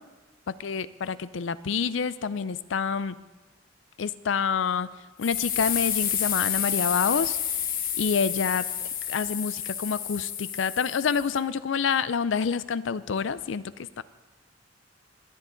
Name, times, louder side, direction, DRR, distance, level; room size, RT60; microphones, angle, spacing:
voice 1, 0.6-3.1 4.0-4.9 5.2-7.4 8.0-8.6 9.1-14.0, left 6 dB, 85° left, 16 dB, 0.5 m, -27 dB
sound 1, 5.2-11.4, left 9 dB, 50° left, 1.0 m, -30 dB
19.5 x 9.8 x 3.9 m, 1.2 s
head